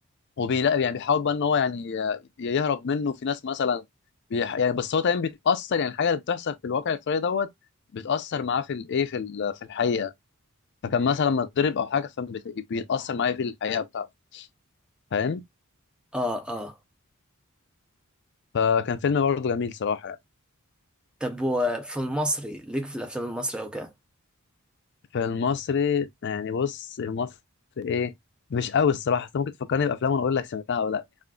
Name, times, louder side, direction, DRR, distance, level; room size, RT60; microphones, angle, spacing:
voice 1, 0.4-3.8 4.3-7.5 7.9-10.1 10.8-14.1 14.3-14.5 15.1-15.4 18.5-20.2 25.1-27.3 27.8-28.1 28.5-31.0, left 6 dB, 55° left, 0.4 m, -26 dB
voice 2, 16.1-16.8 21.2-23.9, equal, 5° right, 0.5 m, -29 dB
3.7 x 2.4 x 2.2 m
head